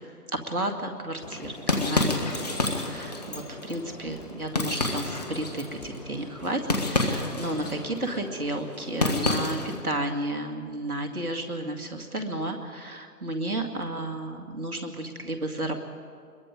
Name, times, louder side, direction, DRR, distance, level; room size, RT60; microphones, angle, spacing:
voice 1, 0.5-6.6 6.9-15.8, right 1 dB, 70° right, 4 dB, 2.2 m, -32 dB
sound 1, 1.2-9.9, left 2 dB, 25° left, 1.3 m, -30 dB
23.5 x 21.5 x 5.2 m, 2.2 s
figure-of-eight pair, 155°, 46 cm